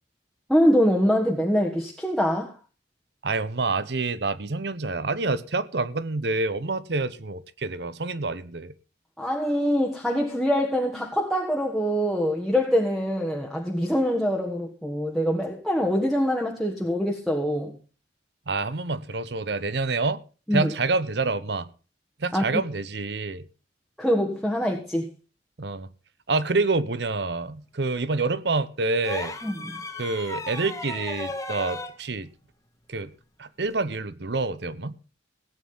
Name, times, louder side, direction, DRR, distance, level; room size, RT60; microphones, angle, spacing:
voice 1, 0.5-2.5 9.2-17.8 20.5-20.7 22.3-22.6 24.0-25.1 29.4-29.8, equal, ahead, 1.4 m, -24 dB
voice 2, 3.2-8.7 18.5-20.2 20.5-21.7 22.2-23.4 25.6-25.9 26.3-29.3 30.0-32.3 32.9-33.1 33.4-34.9, right 3 dB, 65° right, 0.9 m, -27 dB
sound 1, 29.0-32.0 33.7-33.8, left 2 dB, 15° left, 1.5 m, -35 dB
17.0 x 8.8 x 5.5 m
head